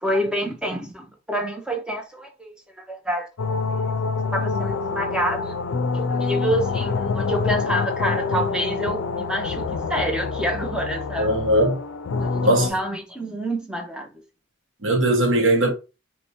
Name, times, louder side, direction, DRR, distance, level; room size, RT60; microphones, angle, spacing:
voice 1, 0.0-3.3 4.3-5.5 5.9-11.4 12.2-14.1, equal, 5° right, 0.7 m, -27 dB
sound 1, 3.4-12.7, left 4 dB, 70° left, 0.4 m, -26 dB
voice 2, 11.2-11.8 12.4-12.7 14.8-15.7, right 1 dB, 65° right, 1.2 m, -19 dB
3.3 x 3.1 x 2.9 m
head